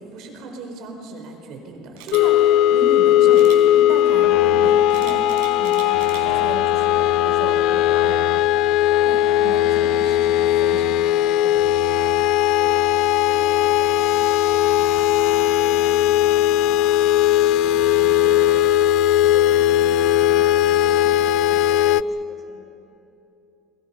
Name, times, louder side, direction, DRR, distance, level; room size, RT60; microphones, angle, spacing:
voice 1, 0.0-5.3 5.6-8.3 9.0-11.8, right 2 dB, 60° right, 3 dB, 4.5 m, -36 dB
Camera, 2.0-2.2 3.3-3.6 4.9-6.2 6.7-7.0, right 11 dB, 85° right, 4.5 m, -40 dB
sound 1, 2.1-22.0, left 12 dB, 65° left, 0.5 m, -18 dB
voice 2, 12.4-12.8 13.1-22.6, left 2 dB, 20° left, 2 dB, 4.4 m, -43 dB
29.5 x 23.0 x 5.7 m, 2.9 s
cardioid pair, 130°, 0 cm